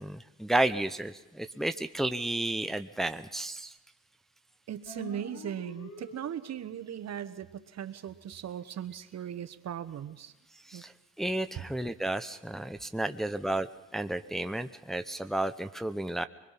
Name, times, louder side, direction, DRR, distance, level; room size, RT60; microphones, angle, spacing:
voice 1, 0.0-3.7 10.6-10.9 11.2-13.7 13.9-16.3, right 1 dB, ahead, 8 dB, 0.8 m, -32 dB
voice 2, 4.7-10.3 10.7-10.8, right 9 dB, 60° right, 11 dB, 1.2 m, -38 dB
sound 1, 4.8-6.8, left 4 dB, 75° left, 3.5 m, -46 dB
24.0 x 21.5 x 5.9 m, 0.99 s
cardioid pair, 90°, 30 cm